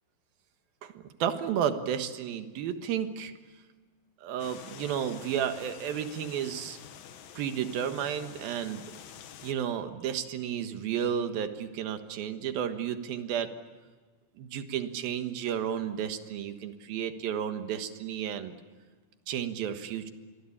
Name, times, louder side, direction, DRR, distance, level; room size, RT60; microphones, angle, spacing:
voice 1, 1.2-3.3 4.2-6.8 7.4-8.8 9.4-13.5 14.4-18.5 19.3-20.1, right 9 dB, 85° right, 8 dB, 3.3 m, -32 dB
sound 1, 4.4-9.5, left 9 dB, 80° left, 3.0 m, -48 dB
28.5 x 23.5 x 8.7 m, 1.4 s
omnidirectional pair, 4.1 m